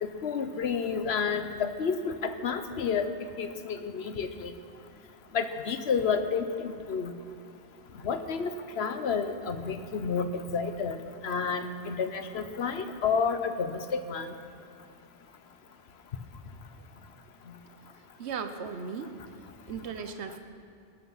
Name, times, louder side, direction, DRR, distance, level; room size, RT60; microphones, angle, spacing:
voice 1, 0.0-4.5 5.3-7.1 8.0-14.3, left 5 dB, 65° left, 9 dB, 1.1 m, -30 dB
voice 2, 18.2-19.2 19.4-20.4, right 6 dB, 75° right, 8 dB, 1.1 m, -37 dB
19.0 x 11.5 x 5.6 m, 2.6 s
omnidirectional pair, 1.2 m